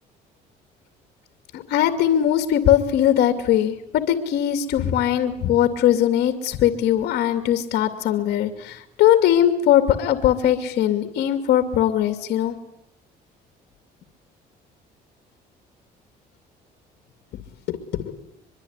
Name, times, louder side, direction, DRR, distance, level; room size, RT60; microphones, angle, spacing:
voice 1, 1.5-12.5 17.7-18.1, left 11 dB, 75° left, 8 dB, 2.5 m, -20 dB
24.0 x 23.0 x 9.6 m, 0.76 s
cardioid pair, 110°, 17 cm